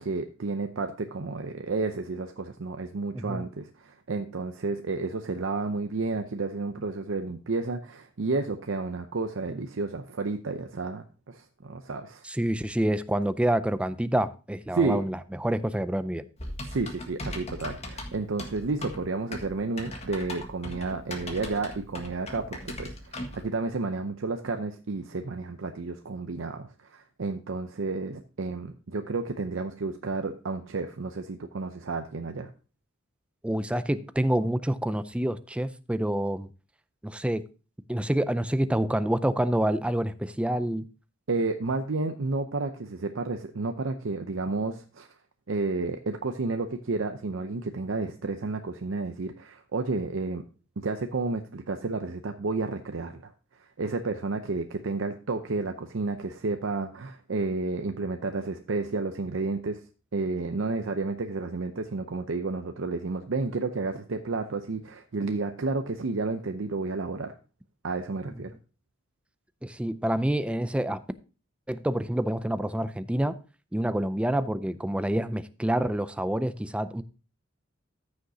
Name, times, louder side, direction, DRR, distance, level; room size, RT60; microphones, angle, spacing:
voice 1, 0.0-12.2 14.7-15.0 16.7-32.5 41.3-45.1 45.5-50.4 50.8-53.3 53.8-59.8 60.1-67.3 67.8-68.5, right 3 dB, 70° right, 0.6 m, -31 dB
voice 2, 3.1-3.5 12.2-16.2 33.4-36.5 37.0-37.4 37.9-40.9 69.6-71.0 71.7-73.4 73.7-77.0, right 1 dB, 5° right, 0.4 m, -27 dB
Typing, 16.4-23.4, left 1 dB, 35° left, 1.6 m, -38 dB
14.0 x 6.5 x 2.7 m
head